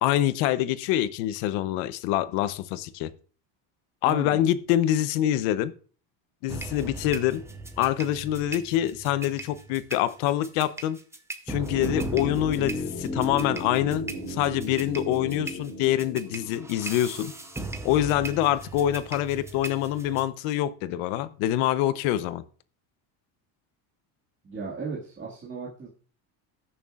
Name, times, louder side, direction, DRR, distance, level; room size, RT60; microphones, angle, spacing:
voice 1, 0.0-3.1 4.0-5.7 6.4-7.4 7.8-11.0 11.5-17.3 17.8-22.4, left 12 dB, 75° left, 0.9 m, -25 dB
voice 2, 4.0-4.5 24.4-25.9, right 4 dB, 25° right, 1.9 m, -36 dB
sound 1, 6.5-20.3, right 3 dB, 5° right, 0.7 m, -39 dB
sound 2, 11.6-17.7 17.9-18.0, left 1 dB, 20° left, 2.7 m, -35 dB
18.5 x 7.0 x 2.4 m
cardioid pair, 145°, 50 cm